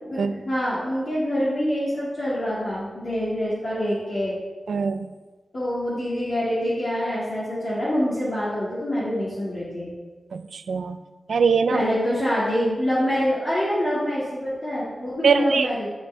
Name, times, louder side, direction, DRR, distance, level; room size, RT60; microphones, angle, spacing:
voice 1, 0.0-4.3 5.5-9.9 11.7-15.9, equal, 45° left, -9 dB, 2.2 m, -25 dB
voice 2, 4.7-5.1 10.3-11.0 11.3-11.8 15.2-15.7, right 5 dB, 90° right, 10 dB, 0.5 m, -22 dB
11.0 x 6.6 x 3.4 m, 1.3 s
wide cardioid pair, 135°, 0 cm